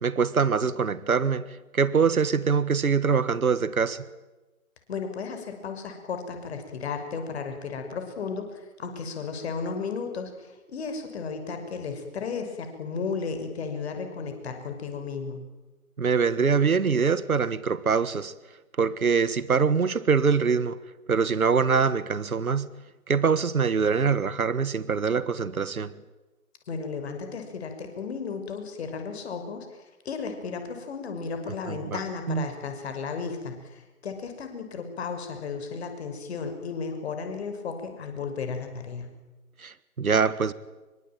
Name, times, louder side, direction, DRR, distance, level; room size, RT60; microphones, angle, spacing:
voice 1, 0.0-4.0 16.0-18.3 18.8-20.8 21.1-22.7 23.1-25.9 31.7-32.0 32.3-32.5 39.6-40.5, right 5 dB, 75° right, 1.6 m, -24 dB
voice 2, 4.9-15.4 26.7-29.7 30.0-39.1, left 5 dB, 45° left, 6.4 m, -34 dB
25.5 x 24.0 x 9.2 m
figure-of-eight pair, 135°, 43 cm